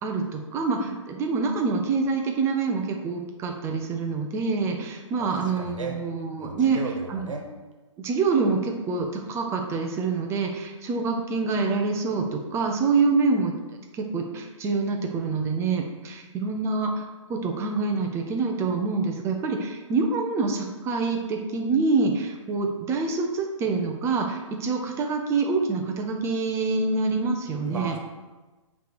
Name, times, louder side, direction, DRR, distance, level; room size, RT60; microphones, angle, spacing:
voice 1, 0.0-6.8 7.1-7.3 8.0-17.0 17.3-28.0, right 4 dB, 15° right, 3 dB, 0.6 m, -26 dB
voice 2, 5.2-6.0 6.4-7.4 27.7-28.0, right 3 dB, 75° right, 2 dB, 1.3 m, -35 dB
7.9 x 3.3 x 4.7 m, 1.2 s
figure-of-eight pair, 130°, 17 cm